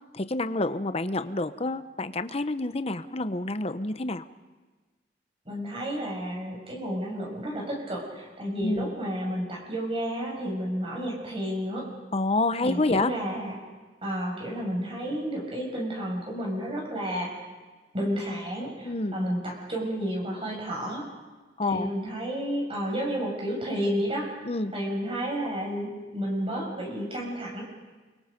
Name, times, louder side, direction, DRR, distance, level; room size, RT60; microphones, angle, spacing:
voice 1, 0.1-4.3 8.6-8.9 12.1-13.1 18.8-19.2 21.6-21.9 24.4-24.7, left 2 dB, 35° left, 11 dB, 1.0 m, -28 dB
voice 2, 5.5-11.9 12.6-13.6 14.0-17.3 17.9-21.1 21.6-24.3 24.7-27.6, equal, 35° right, -1 dB, 7.0 m, -31 dB
29.5 x 24.0 x 5.3 m, 1.3 s
head